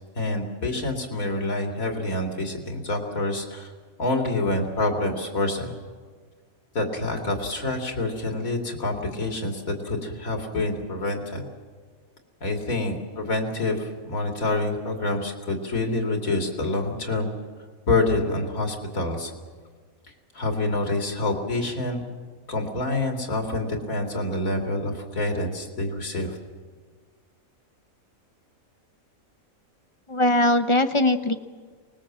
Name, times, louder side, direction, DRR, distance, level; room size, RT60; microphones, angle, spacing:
voice 1, 0.1-3.7 4.0-5.7 6.7-11.5 12.4-17.3 17.9-19.3 20.3-22.0 22.5-26.4, left 2 dB, 75° left, 3 dB, 3.1 m, -27 dB
voice 2, 30.1-31.3, left 1 dB, 25° left, 9 dB, 0.7 m, -20 dB
24.0 x 20.0 x 7.5 m, 1.5 s
omnidirectional pair, 1.5 m